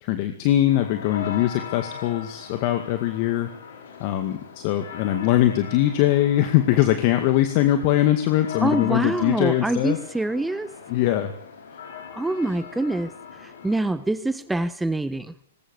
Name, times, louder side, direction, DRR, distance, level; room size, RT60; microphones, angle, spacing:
voice 1, 0.0-3.5 4.0-10.0 10.9-11.3, left 13 dB, 45° left, 8 dB, 2.1 m, -21 dB
sound 1, 0.7-13.9, left 8 dB, 65° left, 5.8 m, -40 dB
voice 2, 8.6-10.7 12.1-13.1 13.4-15.3, right 2 dB, 5° right, 13 dB, 0.9 m, -25 dB
20.5 x 19.0 x 8.3 m, 0.64 s
hypercardioid pair, 120°, 0 cm